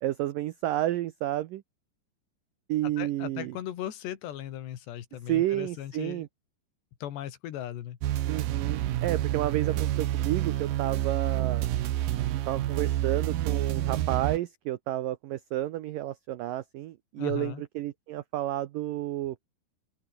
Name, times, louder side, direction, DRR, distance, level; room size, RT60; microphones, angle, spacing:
voice 1, 0.0-1.6 2.7-3.6 5.3-6.3 8.3-11.7 12.5-19.4, right 14 dB, 90° right, 1.9 m, -31 dB
voice 2, 2.8-6.3 7.0-8.0 17.2-17.6, left 11 dB, 70° left, 4.0 m, -38 dB
sound 1, 8.0-14.4, right 13 dB, 65° right, 2.5 m, -28 dB
open air
omnidirectional pair, 5.2 m